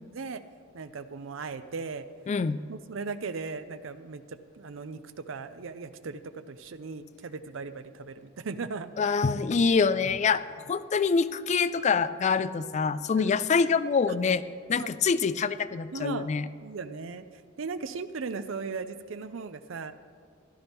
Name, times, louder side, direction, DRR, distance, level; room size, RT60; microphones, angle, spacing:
voice 1, 0.7-2.0 2.7-5.0 5.3-9.1 13.1-13.4 14.1-14.2 14.8-14.9 15.9-16.3 16.6-17.2 17.6-19.9, right 4 dB, 65° right, 12 dB, 0.5 m, -37 dB
voice 2, 2.3-2.6 9.0-16.5, left 5 dB, 35° left, 15 dB, 0.3 m, -25 dB
15.5 x 12.0 x 3.5 m, 2.1 s
head